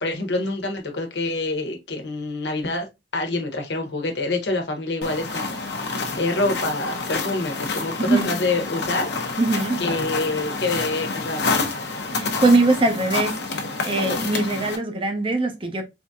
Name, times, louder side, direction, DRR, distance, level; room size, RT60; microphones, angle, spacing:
voice 1, 0.0-2.9 3.1-5.6 5.9-9.3 9.8-11.5, left 2 dB, 85° left, 1.1 m, -26 dB
sound 1, 5.0-14.8, left 3 dB, 70° left, 0.9 m, -28 dB
voice 2, 8.0-8.3 9.4-9.8 12.1-13.4 13.8-15.8, right 2 dB, 30° right, 0.7 m, -21 dB
4.4 x 2.7 x 2.3 m
head